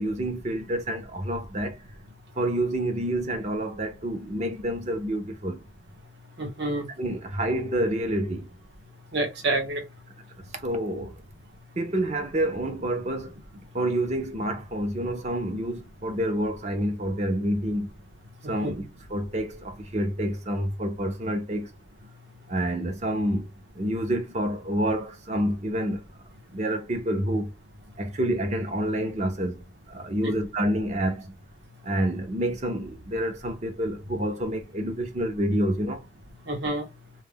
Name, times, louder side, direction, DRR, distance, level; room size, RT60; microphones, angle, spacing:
voice 1, 0.0-1.8 2.4-5.6 7.0-8.5 10.5-11.2 11.8-13.4 13.7-17.9 18.5-21.7 22.5-26.0 26.5-27.5 28.0-31.3 31.8-36.1, right 1 dB, 35° right, 0.6 m, -28 dB
voice 2, 6.4-6.9 9.1-9.9 18.4-18.7 30.2-30.3 36.4-36.9, right 2 dB, 60° right, 1.0 m, -28 dB
2.2 x 2.1 x 3.4 m
head